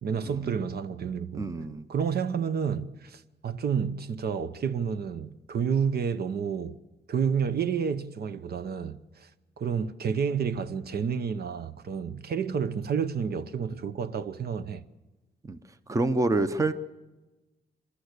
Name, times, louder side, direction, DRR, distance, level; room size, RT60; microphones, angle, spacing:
voice 1, 0.0-1.5 1.9-6.8 7.1-9.3 9.6-14.8, right 6 dB, 60° right, 0.9 m, -30 dB
voice 2, 1.3-1.8 15.4-15.6 15.9-16.7, right 2 dB, 15° right, 0.8 m, -27 dB
28.5 x 13.5 x 8.2 m
wide cardioid pair, 165°, 18 cm